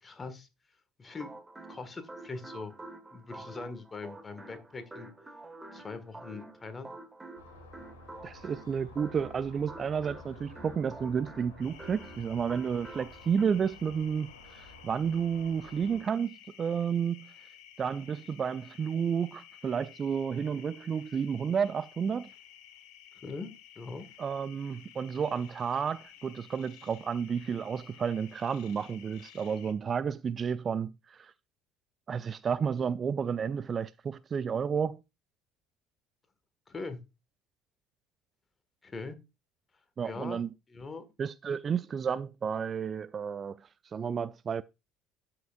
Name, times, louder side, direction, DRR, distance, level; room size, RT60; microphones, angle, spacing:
voice 1, 0.0-0.5 1.0-1.3 1.7-2.7 3.1-5.1 5.7-6.9 23.2-24.1 36.7-37.0 38.8-39.2 40.0-41.1, left 3 dB, 25° left, 1.7 m, -41 dB
sound 1, 1.1-13.4, right 2 dB, 15° right, 1.3 m, -48 dB
sound 2, 7.4-16.0, left 2 dB, 75° left, 1.9 m, -52 dB
voice 2, 8.2-17.3 17.8-22.3 24.2-31.3 32.1-35.0 40.0-40.5 41.2-43.6 43.9-44.6, right 7 dB, 35° right, 0.3 m, -31 dB
sound 3, 11.6-29.7, left 10 dB, 55° left, 1.3 m, -54 dB
12.0 x 5.8 x 2.4 m
figure-of-eight pair, 60°, 0 cm